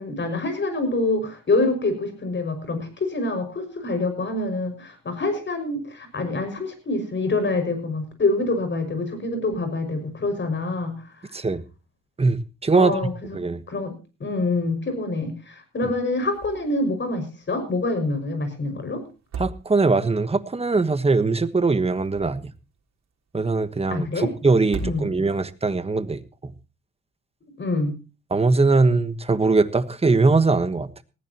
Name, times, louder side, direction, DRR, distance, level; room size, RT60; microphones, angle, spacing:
voice 1, 0.0-11.1 12.7-13.4 13.7-13.9 14.2-19.0 23.9-24.3 24.8-25.1 27.4-27.9, left 2 dB, 40° left, 6.0 m, -26 dB
voice 2, 12.2-12.9 13.3-13.6 19.4-22.5 23.3-26.5 28.3-31.0, right 3 dB, 20° right, 1.3 m, -21 dB
sound 1, 16.3-16.8 17.1-17.2 19.1-20.1 21.8-22.7 24.6-25.5, right 3 dB, 60° right, 3.6 m, -36 dB
19.5 x 15.0 x 3.0 m
cardioid pair, 90°, 30 cm